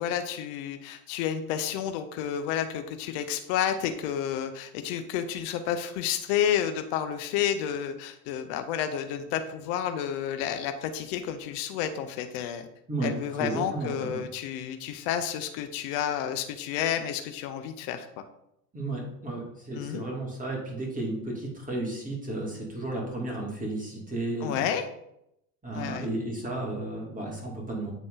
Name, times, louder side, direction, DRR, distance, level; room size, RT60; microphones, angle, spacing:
voice 1, 0.0-12.7 13.0-18.2 19.7-20.0 24.4-24.8 25.8-26.1, left 9 dB, 65° left, 8 dB, 0.9 m, -30 dB
voice 2, 13.4-14.2 18.7-24.6 25.6-27.9, right 2 dB, 15° right, -2 dB, 2.8 m, -33 dB
9.3 x 3.8 x 3.9 m, 0.79 s
hypercardioid pair, 90°, 49 cm